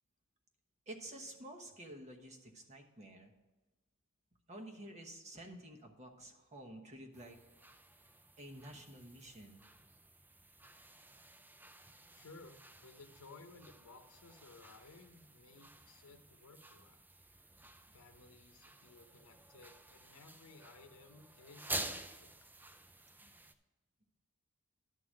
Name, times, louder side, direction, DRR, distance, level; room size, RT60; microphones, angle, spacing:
voice 1, 0.9-3.3 4.5-7.4 8.4-9.6 23.2-23.3, right 1 dB, 30° right, 3 dB, 1.1 m, -51 dB
sound 1, 7.1-23.5, right 2 dB, 10° right, 0.4 m, -50 dB
voice 2, 12.1-17.0 17.9-22.3, left 3 dB, 80° left, 7 dB, 0.8 m, -58 dB
11.0 x 3.9 x 7.4 m, 1.1 s
head